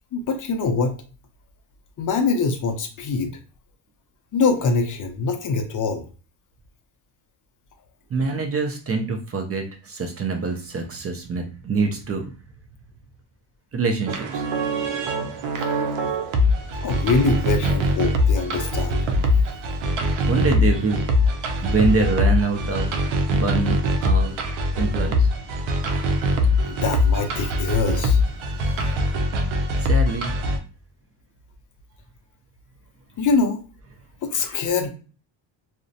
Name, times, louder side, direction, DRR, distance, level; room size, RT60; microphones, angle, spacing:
voice 1, 0.1-0.9 2.0-3.3 4.3-6.0 15.6-15.7 16.8-19.0 25.9-26.0 26.7-28.2 33.2-33.6 34.2-34.9, left 4 dB, 45° left, 5 dB, 0.5 m, -23 dB
voice 2, 8.1-12.3 13.7-14.4 20.2-21.0 21.6-22.9 23.3-24.3 24.7-25.3 29.8-30.3, right 3 dB, 30° right, 3 dB, 0.5 m, -25 dB
sound 1, 14.1-30.6, left 1 dB, 80° right, 0.6 m, -22 dB
2.4 x 2.1 x 2.6 m, 0.36 s
cardioid pair, 95°, 47 cm